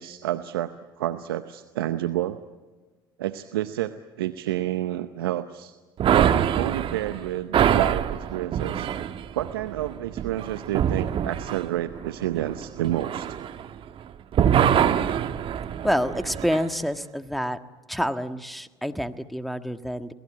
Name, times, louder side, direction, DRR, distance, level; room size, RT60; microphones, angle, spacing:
voice 1, 0.0-2.4 3.2-5.8 6.2-8.9 9.4-13.3, right 13 dB, 85° right, 10 dB, 0.8 m, -29 dB
sound 1, 6.0-14.0 14.3-16.7, right 9 dB, 50° right, 1.3 m, -25 dB
voice 2, 15.8-17.6 17.9-20.1, equal, ahead, 9 dB, 1.6 m, -27 dB
28.0 x 19.0 x 8.7 m, 1.3 s
hypercardioid pair, 70°, 12 cm